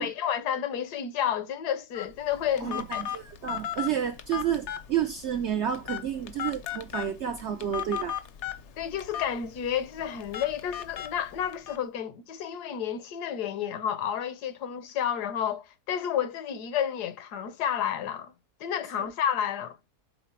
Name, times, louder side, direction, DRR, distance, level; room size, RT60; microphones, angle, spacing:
voice 1, 0.0-3.0 8.8-18.3 18.6-19.8, left 9 dB, 75° left, 1.4 m, -31 dB
Telephone, 1.9-11.8, left 10 dB, 60° left, 0.8 m, -37 dB
voice 2, 2.6-8.2, right 9 dB, 65° right, 0.7 m, -30 dB
5.8 x 3.8 x 4.3 m
omnidirectional pair, 1.7 m